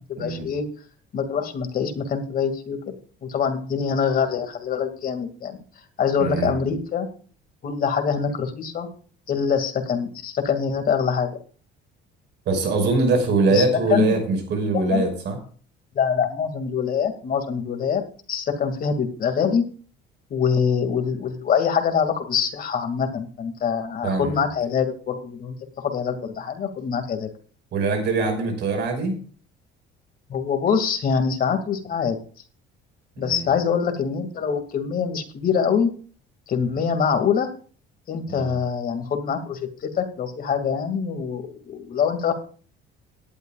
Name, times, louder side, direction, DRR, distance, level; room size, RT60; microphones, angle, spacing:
voice 1, 0.1-0.7 1.1-2.9 3.2-5.6 6.0-7.1 7.6-8.9 9.3-11.3 13.5-13.6 13.9-14.1 14.7-15.0 16.0-18.0 18.3-19.6 20.3-27.3 30.3-32.2 33.2-35.9 36.5-37.5 38.1-42.3, left 6 dB, 45° left, 6 dB, 2.3 m, -24 dB
voice 2, 6.2-6.5 12.5-15.4 24.0-24.4 27.7-29.2 33.2-33.5 38.3-38.5, right 3 dB, 60° right, 5 dB, 5.5 m, -23 dB
18.0 x 12.0 x 2.4 m, 0.42 s
cardioid pair, 115°, 20 cm